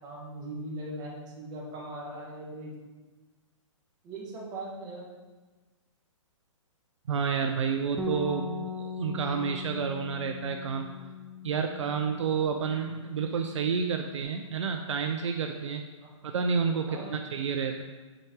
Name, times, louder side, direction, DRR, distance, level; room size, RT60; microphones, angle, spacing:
voice 1, 0.0-2.7 4.0-5.0 16.0-16.1 16.8-17.2, right 1 dB, 25° right, -3 dB, 1.8 m, -39 dB
voice 2, 7.1-10.9 11.4-15.8 16.2-17.8, right 6 dB, 65° right, 5 dB, 0.6 m, -30 dB
Bass guitar, 8.0-14.2, left 3 dB, 5° right, 0.7 m, -39 dB
7.7 x 4.8 x 4.7 m, 1.3 s
hypercardioid pair, 135°, 17 cm